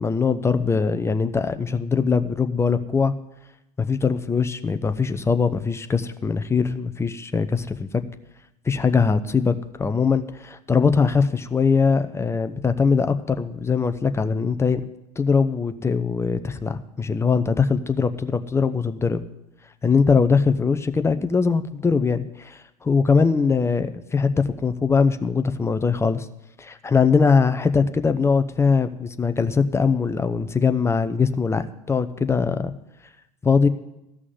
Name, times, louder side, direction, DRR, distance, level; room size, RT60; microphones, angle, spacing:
voice 1, 0.0-3.1 3.8-7.9 8.7-9.5 9.8-14.8 15.2-19.2 19.8-26.3 26.6-32.7 33.4-33.7, left 5 dB, 15° left, 10 dB, 0.8 m, -21 dB
14.5 x 6.2 x 9.3 m, 0.90 s
figure-of-eight pair, 70°, 20 cm